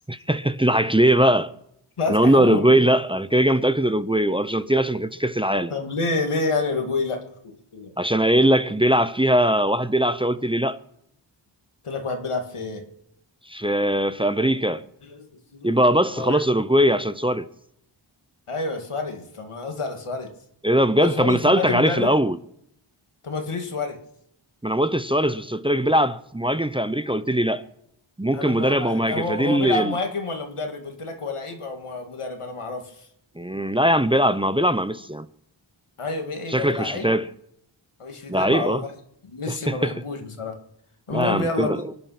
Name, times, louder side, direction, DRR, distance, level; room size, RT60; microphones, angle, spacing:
voice 1, 0.1-1.5 2.1-5.7 8.0-10.8 13.5-14.8 15.6-17.5 20.6-22.4 24.6-27.6 28.2-29.9 33.4-35.3 36.5-37.3 38.3-38.8 39.5-39.9 41.1-41.8, right 1 dB, 10° right, 0.8 m, -21 dB
voice 2, 2.0-2.8 5.7-7.2 7.4-7.9 11.8-12.8 15.0-15.3 15.5-15.8 16.1-16.4 18.5-20.3 21.0-22.1 23.2-24.0 28.3-33.1 36.0-37.1 38.0-38.9 39.2-40.5 41.1-41.8, left 3 dB, 85° left, 2.3 m, -28 dB
24.0 x 9.3 x 5.9 m
cardioid pair, 40°, 50 cm